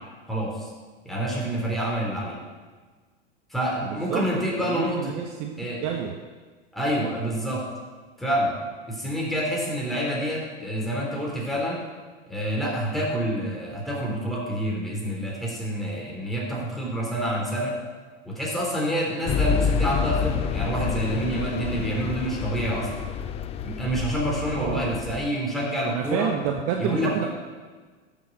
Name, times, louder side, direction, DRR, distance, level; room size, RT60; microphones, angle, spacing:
voice 1, 0.3-0.7 1.0-2.4 3.5-5.2 5.6-5.8 6.7-7.7 8.2-8.6 8.9-11.8 12.3-17.8 18.2-22.9 23.6-26.3 26.8-27.3, right 1 dB, ahead, -4 dB, 3.8 m, -27 dB
voice 2, 3.9-4.2 4.6-6.1 24.6-24.9 25.9-27.3, right 8 dB, 40° right, 3 dB, 1.2 m, -29 dB
sound 1, 19.3-25.3, left 7 dB, 15° left, 0.5 m, -28 dB
12.5 x 7.5 x 5.9 m, 1.4 s
hypercardioid pair, 105°, 36 cm